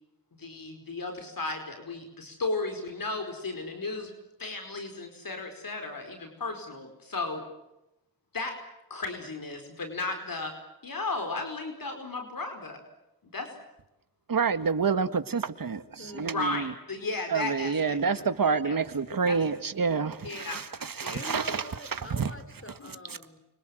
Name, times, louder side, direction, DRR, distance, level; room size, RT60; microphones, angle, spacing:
voice 1, 0.4-4.1 4.4-7.4 8.3-8.5 8.9-10.5 10.8-12.8 13.3-13.5 16.3-18.0 18.6-18.8 19.3-19.4 20.2-21.2 22.8-22.9, left 3 dB, 75° left, 4.8 m, -35 dB
voice 2, 14.3-16.7 17.3-21.6 21.9-22.3, right 5 dB, 70° right, 1.7 m, -28 dB
voice 3, 16.0-16.5 21.0-23.4, left 2 dB, 40° left, 5.0 m, -45 dB
29.5 x 25.5 x 7.8 m
wide cardioid pair, 65°, 35 cm